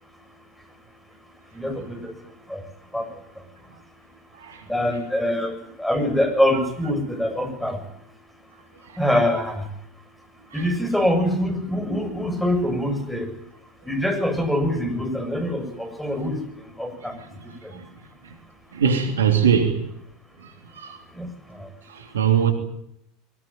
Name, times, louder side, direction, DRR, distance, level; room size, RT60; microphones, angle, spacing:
voice 1, 1.6-2.1 2.5-2.6 2.9-3.1 4.7-7.8 9.0-9.6 10.5-13.3 13.9-16.4 16.8-17.1 17.6-17.7 21.2-21.3 21.6-21.7, left 1 dB, 5° left, 7.2 m, -24 dB
voice 2, 4.3-4.7 8.8-9.0 10.5-10.7 17.0-17.9 18.2-18.4 18.7-19.9 20.4-21.0 21.8-22.5, right 7 dB, 80° right, 3.2 m, -23 dB
22.0 x 20.5 x 9.0 m
hypercardioid pair, 80°, 0 cm